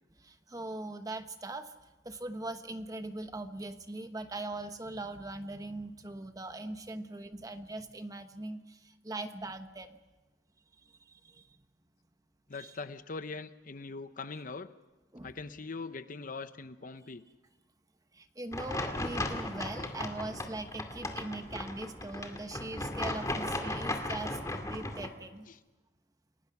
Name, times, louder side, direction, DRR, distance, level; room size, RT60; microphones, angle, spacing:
voice 1, 0.2-1.7 2.0-10.0 11.2-11.5 12.5-12.7 15.1-15.3 18.1-25.5, right 2 dB, 20° right, 8 dB, 1.2 m, -41 dB
voice 2, 12.5-14.7 15.2-17.2 25.5-25.6, left 4 dB, 50° left, 12 dB, 0.8 m, -42 dB
sound 1, 18.5-25.1, left 1 dB, 20° left, 2.3 m, -36 dB
29.0 x 19.0 x 6.0 m, 1.1 s
head